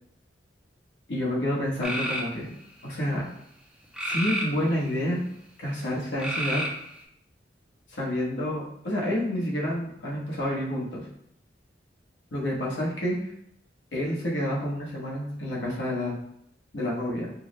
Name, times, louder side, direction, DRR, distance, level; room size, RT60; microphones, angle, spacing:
voice 1, 1.1-2.5 2.8-3.2 4.0-5.2 5.6-6.6 7.9-11.1 12.3-13.2 13.9-16.2 16.7-17.3, left 1 dB, 75° left, -5 dB, 1.1 m, -29 dB
sound 1, 1.8-2.3 3.9-5.0 6.2-7.0, equal, 5° right, 0.5 m, -30 dB
4.6 x 2.1 x 3.1 m, 0.73 s
head